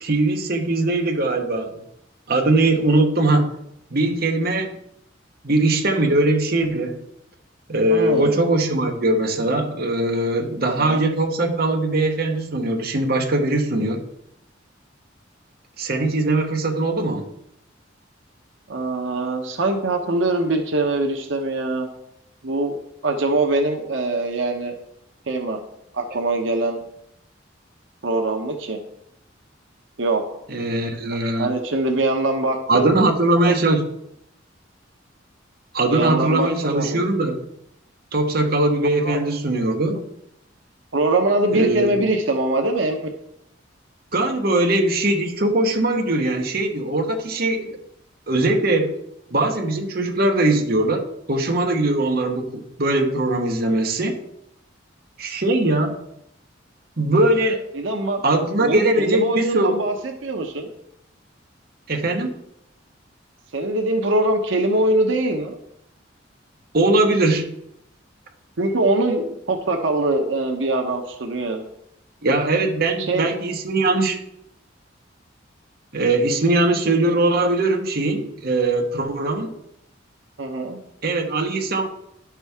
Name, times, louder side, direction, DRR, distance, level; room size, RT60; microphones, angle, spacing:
voice 1, 0.0-1.7 2.3-3.5 3.9-4.8 5.4-7.0 7.7-14.0 15.8-17.3 30.5-31.5 32.7-33.9 35.7-37.4 38.1-40.0 41.5-42.0 44.1-47.8 48.3-49.0 49.3-54.2 55.2-56.0 57.0-57.6 58.2-59.8 61.9-62.3 66.7-67.5 72.2-74.2 75.9-79.5 81.0-81.9, right 2 dB, 50° right, 3 dB, 1.0 m, -21 dB
voice 2, 7.9-8.4 10.6-11.0 18.7-21.9 22.4-22.8 23.0-24.7 25.3-25.6 25.9-26.8 28.0-28.8 30.0-30.2 31.4-32.9 33.5-33.6 35.9-37.0 39.0-39.2 40.9-43.0 57.7-58.2 58.6-60.7 63.5-65.6 68.6-71.6 73.0-73.3 80.4-80.8, right 2 dB, 75° right, 3 dB, 0.9 m, -23 dB
11.0 x 6.1 x 3.5 m, 0.77 s
head